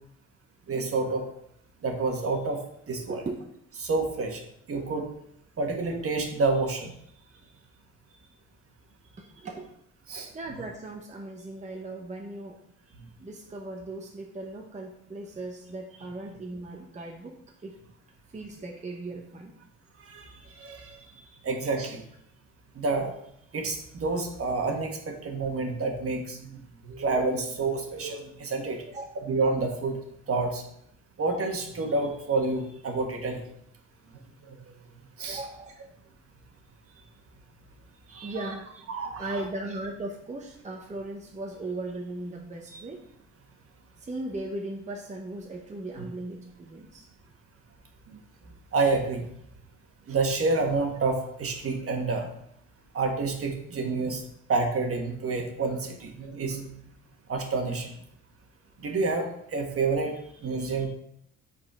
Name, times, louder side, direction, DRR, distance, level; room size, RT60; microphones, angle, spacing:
voice 1, 0.7-1.2 1.8-2.6 2.9-3.2 3.8-4.4 4.7-5.1 5.6-6.9 10.1-10.3 20.0-21.1 21.4-22.0 22.7-23.1 23.5-26.5 26.8-28.8 29.3-30.0 30.3-30.6 31.2-33.4 34.4-34.7 35.2-35.4 38.1-38.5 38.9-39.3 48.1-48.2 48.7-49.3 50.1-52.3 52.9-54.2 54.5-56.8 57.3-57.9 58.8-60.1 60.4-60.9, right 3 dB, 50° right, 3 dB, 1.4 m, -28 dB
voice 2, 3.1-3.4 9.2-9.7 10.3-12.6 13.2-17.4 17.6-17.8 18.3-19.5 28.9-29.1 35.3-35.8 38.2-38.8 39.2-43.0 44.0-47.1, right 2 dB, 25° right, 0 dB, 0.9 m, -37 dB
5.3 x 4.2 x 4.8 m, 0.72 s
cardioid pair, 90°, 30 cm